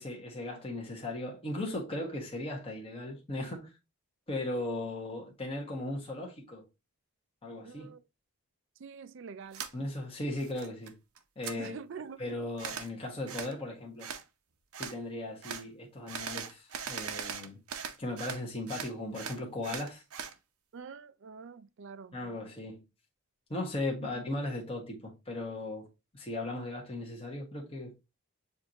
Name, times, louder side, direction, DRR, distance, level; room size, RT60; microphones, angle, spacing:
voice 1, 0.0-3.7 4.3-6.6 7.4-7.9 9.7-10.9 11.4-11.7 12.2-14.1 14.8-17.6 18.0-20.0 22.1-22.8 23.5-25.9 26.1-27.9, left 1 dB, 25° left, 1.2 m, -37 dB
voice 2, 7.6-8.0 8.8-9.7 11.5-12.2 20.7-22.2 23.9-24.2, right 5 dB, 55° right, 0.4 m, -45 dB
sound 1, 9.5-9.7 10.1-10.9 11.2-11.6 12.6-12.9 13.3-13.5 14.0-14.2 14.7-15.0 15.4-15.6 16.1-18.4 18.7-20.3, right 7 dB, 85° right, 0.7 m, -40 dB
7.0 x 2.6 x 2.8 m
head